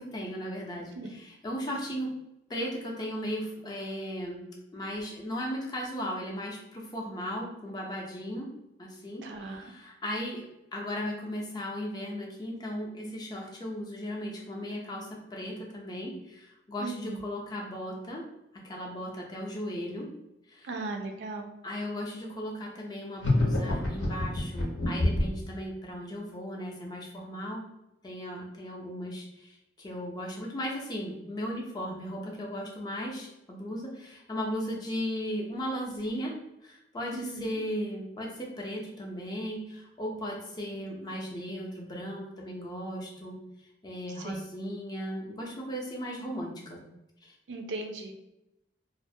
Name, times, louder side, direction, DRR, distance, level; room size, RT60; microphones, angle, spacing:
voice 1, 0.0-2.1 2.5-4.5 4.7-8.5 8.8-10.5 10.7-18.2 18.6-20.1 20.5-20.7 21.6-27.6 28.0-36.3 36.6-43.4 43.8-46.8 47.2-47.3, equal, 20° left, -1 dB, 0.4 m, -36 dB
voice 2, 9.2-9.7 16.8-17.2 20.6-21.6 37.1-37.6 44.2-44.4 47.5-48.1, right 3 dB, 75° right, 3 dB, 0.4 m, -37 dB
sound 1, 23.2-25.4, left 1 dB, 80° left, 0.7 m, -27 dB
2.4 x 2.0 x 2.6 m, 0.89 s
head